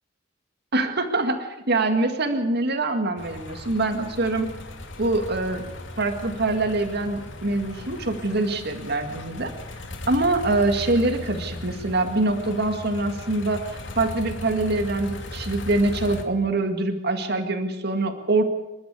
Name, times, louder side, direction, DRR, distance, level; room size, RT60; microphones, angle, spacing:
voice 1, 0.7-4.5 5.0-5.6 6.0-9.5 10.1-18.4, right 2 dB, 60° right, 6 dB, 2.0 m, -24 dB
sound 1, 3.2-16.2, left 1 dB, 75° left, 2.6 m, -37 dB
28.0 x 12.0 x 8.4 m, 0.93 s
head